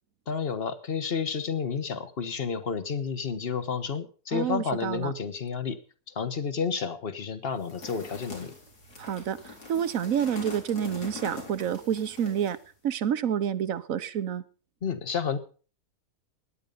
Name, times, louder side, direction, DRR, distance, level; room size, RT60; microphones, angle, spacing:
voice 1, 0.3-5.8 6.1-8.5 14.8-15.4, left 6 dB, 40° left, 12 dB, 1.4 m, -31 dB
voice 2, 4.3-5.1 9.0-12.6 12.8-14.4, right 9 dB, 65° right, 15 dB, 1.2 m, -29 dB
sound 1, 7.6-12.7, left 3 dB, 90° left, 4.8 m, -43 dB
17.0 x 10.5 x 5.4 m, 0.39 s
omnidirectional pair, 1.6 m